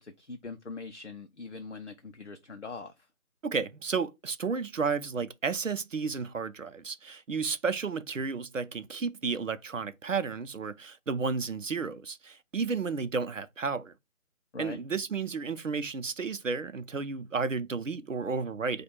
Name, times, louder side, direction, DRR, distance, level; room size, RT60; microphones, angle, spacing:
voice 1, 0.0-2.9 14.5-14.8, left 4 dB, 55° left, 0.6 m, -42 dB
voice 2, 3.4-13.9 14.6-18.8, right 5 dB, 60° right, 0.6 m, -32 dB
4.8 x 2.3 x 4.2 m
figure-of-eight pair, 180°, 44 cm